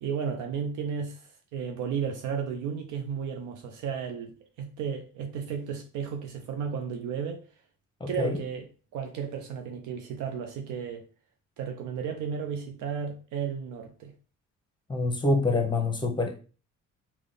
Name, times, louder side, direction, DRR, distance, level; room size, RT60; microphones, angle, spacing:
voice 1, 0.0-7.4 8.1-8.6 8.9-11.1 11.6-14.1, right 7 dB, 85° right, 0.6 m, -33 dB
voice 2, 8.0-8.4 14.9-16.4, left 2 dB, 15° left, 0.9 m, -26 dB
3.4 x 2.4 x 3.8 m
cardioid pair, 90°, 30 cm